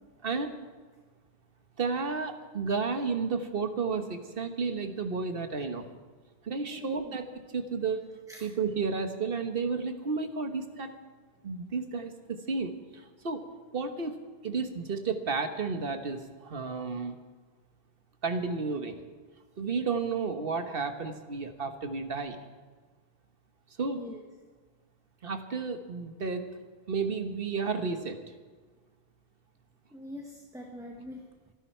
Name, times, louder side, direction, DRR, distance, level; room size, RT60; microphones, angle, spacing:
voice 1, 0.2-0.5 1.8-5.9 6.4-8.1 8.4-10.9 11.4-13.4 13.7-14.2 14.4-17.2 18.2-19.0 19.6-22.4 23.8-24.0 25.2-26.5 26.9-28.2, right 4 dB, 60° right, 7 dB, 1.5 m, -32 dB
voice 2, 6.7-7.1 8.3-8.4 23.8-24.2 29.9-31.2, left 1 dB, 5° right, 1 dB, 1.4 m, -44 dB
26.0 x 11.0 x 4.5 m, 1.5 s
omnidirectional pair, 1.1 m